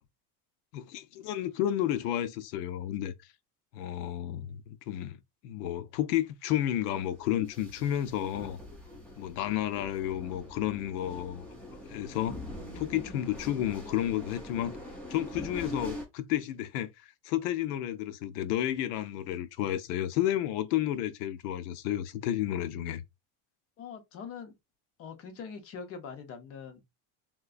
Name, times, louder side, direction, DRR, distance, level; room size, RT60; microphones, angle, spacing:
voice 1, 0.7-3.1 3.7-5.2 5.4-8.6 9.2-11.4 11.9-12.4 12.8-14.7 15.1-23.0, left 12 dB, 85° left, 0.6 m, -31 dB
sound 1, 6.8-16.1, left 1 dB, 5° left, 0.3 m, -43 dB
voice 2, 23.8-24.6 25.0-26.8, left 6 dB, 30° left, 0.7 m, -43 dB
3.7 x 2.5 x 2.4 m
cardioid pair, 160°, 45 cm